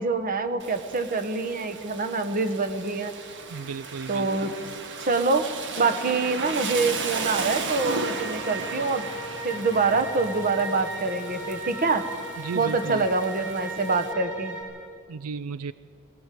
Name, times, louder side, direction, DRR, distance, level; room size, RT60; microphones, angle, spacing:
voice 1, 0.0-3.1 4.1-4.5 5.1-5.5 5.8-9.1 9.4-12.1 12.5-14.6, right 3 dB, 40° right, 7 dB, 1.4 m, -25 dB
Rain, 0.6-14.1, right 4 dB, 60° right, 1.5 m, -36 dB
voice 2, 3.5-4.5 12.4-13.0 15.1-15.7, right 5 dB, 80° right, 15 dB, 0.4 m, -34 dB
sound 1, 7.7-14.6, equal, 15° right, 7.9 m, -36 dB
22.0 x 18.5 x 7.7 m, 2.4 s
head